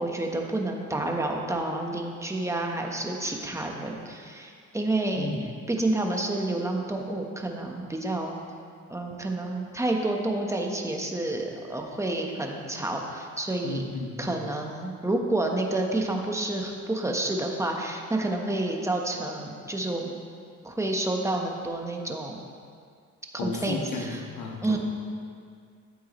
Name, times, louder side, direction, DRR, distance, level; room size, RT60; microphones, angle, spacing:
voice 1, 0.0-8.4 8.9-13.9 14.2-20.1 20.6-22.4 23.3-24.2 24.6-24.8, right 2 dB, 10° right, 1 dB, 1.2 m, -29 dB
voice 2, 13.6-14.3 23.4-24.8, left 3 dB, 85° left, 1 dB, 1.5 m, -33 dB
13.0 x 8.1 x 3.2 m, 2.2 s
cardioid pair, 90°, 30 cm